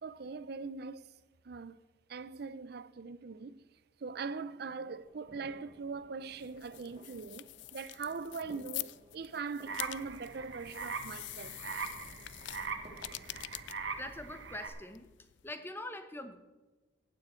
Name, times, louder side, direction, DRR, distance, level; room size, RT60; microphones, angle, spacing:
voice 1, 0.0-1.1 1.4-1.8 2.1-3.6 4.0-11.6 13.4-13.5, right 4 dB, 55° right, 0.5 m, -41 dB
sound 1, 5.0-13.6, right 1 dB, 30° right, 1.8 m, -59 dB
sound 2, 6.3-15.5, left 16 dB, 70° left, 0.4 m, -46 dB
sound 3, 9.7-14.7, right 5 dB, 75° right, 1.3 m, -42 dB
voice 2, 13.9-15.1 15.4-16.4, left 1 dB, 10° left, 0.9 m, -43 dB
15.0 x 9.1 x 4.4 m
head